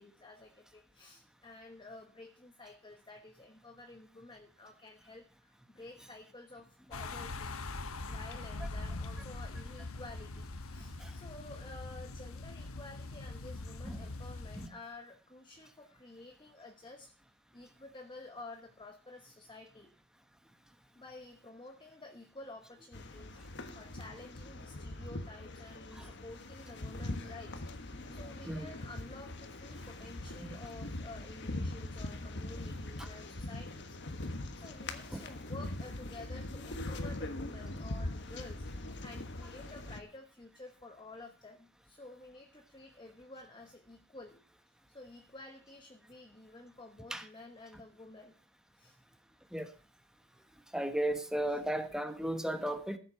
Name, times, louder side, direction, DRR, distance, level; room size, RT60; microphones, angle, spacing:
voice 1, 0.0-7.5 8.1-17.1 17.5-19.9 20.9-34.3 34.6-44.4 44.9-48.4 48.8-49.0 51.5-51.6, left 2 dB, 25° left, 1.1 m, -51 dB
sound 1, 6.9-14.7, left 2 dB, 85° left, 1.1 m, -42 dB
sound 2, 22.9-40.0, left 2 dB, 55° left, 1.3 m, -42 dB
voice 2, 50.7-53.0, right 1 dB, 5° right, 1.1 m, -35 dB
14.0 x 7.9 x 5.7 m
head